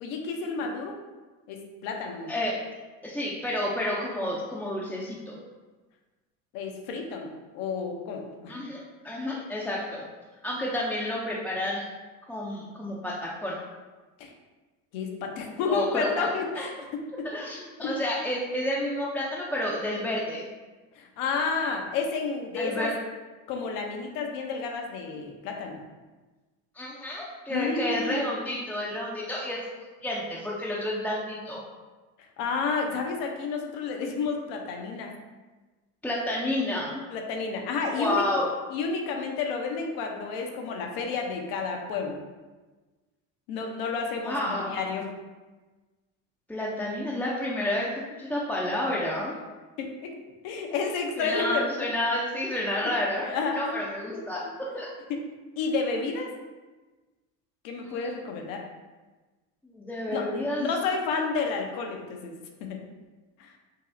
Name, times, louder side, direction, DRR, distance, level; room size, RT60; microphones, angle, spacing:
voice 1, 0.0-0.9 1.5-2.3 6.5-7.3 7.5-8.5 14.2-14.3 14.9-17.3 17.8-17.9 20.9-22.9 23.5-25.8 27.5-28.2 32.4-35.2 37.1-38.3 38.7-42.2 43.5-45.1 49.8-50.1 50.4-51.7 53.2-53.8 55.6-56.3 57.6-58.6 60.1-62.3 62.6-62.8 63.4-63.6, left 4 dB, 80° left, 2 dB, 0.8 m, -31 dB
voice 2, 2.3-2.6 3.0-5.3 8.5-10.0 10.4-11.8 12.3-13.6 15.7-16.7 17.3-20.5 22.6-22.9 26.7-29.6 30.0-31.6 36.0-37.0 37.9-38.5 44.2-44.8 46.5-49.4 51.2-53.3 53.5-54.9 57.8-58.1 59.6-60.7, left 1 dB, 5° left, -6 dB, 0.4 m, -30 dB
5.4 x 2.0 x 2.6 m, 1.2 s
supercardioid pair, 95°, 38 cm